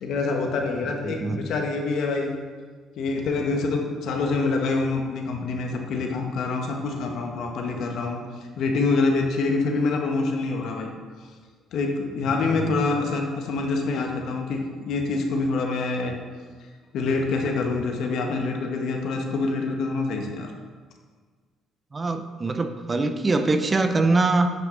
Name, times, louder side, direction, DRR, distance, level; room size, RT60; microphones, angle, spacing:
voice 1, 0.0-2.3 3.0-8.2 8.6-10.9 11.7-16.2 16.9-20.5, left 3 dB, 70° left, 2 dB, 1.3 m, -26 dB
voice 2, 1.0-1.4 21.9-24.5, right 3 dB, 30° right, 8 dB, 0.7 m, -23 dB
9.2 x 5.8 x 4.0 m, 1.5 s
supercardioid pair, 75°, 0 cm